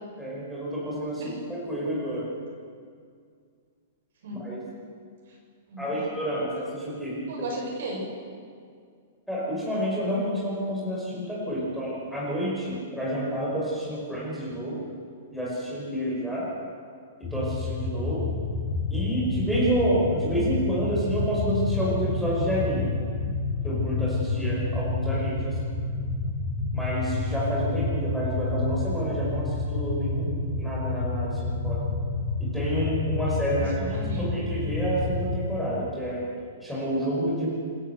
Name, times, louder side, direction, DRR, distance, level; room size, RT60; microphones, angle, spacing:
voice 1, 0.2-2.3 4.3-4.6 5.8-7.3 9.3-14.8 15.3-16.5 17.2-18.3 18.9-23.0 23.6-25.5 26.7-31.8 32.4-33.8 34.2-36.2 36.6-37.5, equal, ahead, -7 dB, 5.6 m, -29 dB
voice 2, 5.7-6.1 7.3-8.0 33.6-34.4, right 2 dB, 70° right, -1 dB, 7.2 m, -35 dB
sound 1, 17.2-35.4, left 3 dB, 20° left, 3.6 m, -29 dB
27.0 x 12.5 x 8.1 m, 2.2 s
hypercardioid pair, 150°, 0 cm